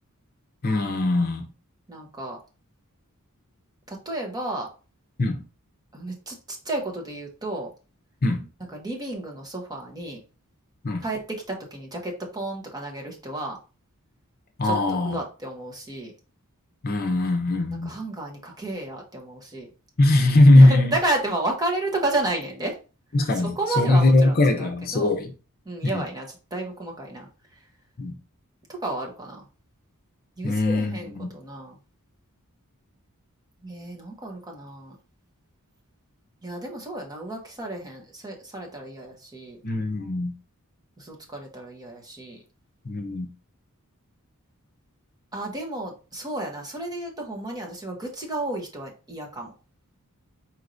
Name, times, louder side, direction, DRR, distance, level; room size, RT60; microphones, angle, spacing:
voice 1, 0.6-1.4 5.2-5.4 8.2-8.5 10.8-11.0 14.6-15.2 16.8-18.0 20.0-20.9 23.1-25.3 25.8-26.0 28.0-28.2 30.4-31.3 39.6-40.3 42.8-43.3, left 2 dB, 40° left, 0.7 m, -20 dB
voice 2, 1.9-2.4 3.9-4.7 5.9-7.7 8.7-10.2 11.0-13.6 14.6-14.7 15.0-16.1 17.8-19.7 20.5-22.8 23.3-25.1 25.6-27.3 28.8-29.4 30.4-31.8 33.6-35.0 36.4-39.6 41.0-42.4 45.3-49.5, right 2 dB, 15° right, 1.1 m, -32 dB
4.6 x 4.4 x 2.6 m
head